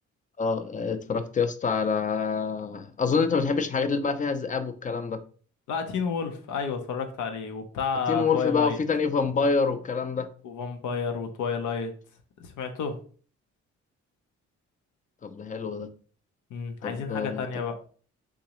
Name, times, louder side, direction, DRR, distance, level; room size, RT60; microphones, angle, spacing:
voice 1, 0.4-5.2 8.1-10.3 15.2-15.9 16.8-17.5, left 5 dB, 25° left, 10 dB, 0.5 m, -26 dB
voice 2, 5.7-8.8 10.4-11.9 12.4-13.0 16.5-17.8, left 6 dB, 85° left, 6 dB, 0.7 m, -30 dB
3.7 x 2.9 x 2.9 m, 0.42 s
cardioid pair, 90°, 30 cm